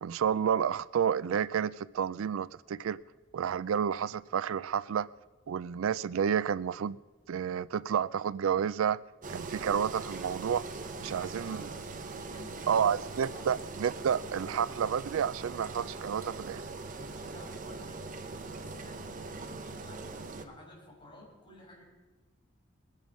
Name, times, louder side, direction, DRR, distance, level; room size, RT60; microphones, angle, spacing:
voice 1, 0.0-3.0 3.3-5.1 5.5-7.0 7.3-9.0 9.3-10.7 11.0-11.7 12.7-16.6, right 8 dB, 90° right, 0.4 m, -30 dB
Engine, 9.2-20.4, right 3 dB, 40° right, 1.0 m, -41 dB
voice 2, 11.0-11.8 12.1-12.8 13.1-13.5 17.0-21.8, left 1 dB, 25° left, 5.4 m, -53 dB
21.0 x 10.5 x 5.2 m
head